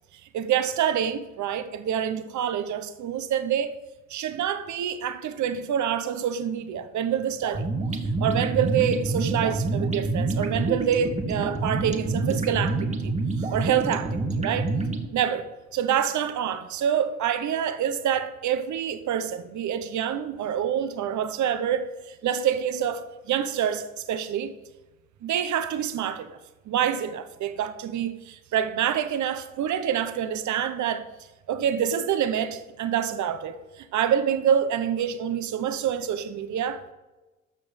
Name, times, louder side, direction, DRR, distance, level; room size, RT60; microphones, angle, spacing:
voice 1, 0.3-3.7 4.1-7.7 7.9-14.7 15.1-24.5 25.2-26.4 26.7-31.1 31.5-36.8, right 9 dB, 70° right, 1.0 m, -27 dB
sound 1, 7.4-15.1, right 3 dB, 25° right, 1.4 m, -27 dB
13.5 x 6.1 x 5.1 m
cardioid pair, 90°, 30 cm